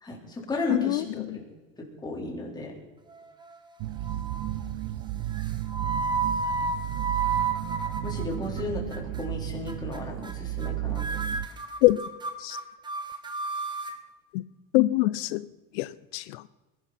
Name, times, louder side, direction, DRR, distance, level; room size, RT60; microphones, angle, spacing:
voice 1, 0.0-1.2 2.0-2.7 8.0-11.2, left 2 dB, 15° left, -1 dB, 4.0 m, -34 dB
voice 2, 0.7-1.4 11.8-12.0 12.4-12.6 14.3-14.4 14.7-15.4 15.7-16.4, left 18 dB, 80° left, 16 dB, 0.6 m, -24 dB
sound 1, 3.1-3.7 4.0-4.5 5.3-8.6 8.9-9.3 9.7-10.0 10.2-10.3 10.6-10.7 11.0-14.0, right 4 dB, 15° right, 1.6 m, -32 dB
sound 2, 3.8-11.5, right 14 dB, 55° right, 0.7 m, -33 dB
21.0 x 11.5 x 4.2 m, 1.2 s
supercardioid pair, 135°, 30 cm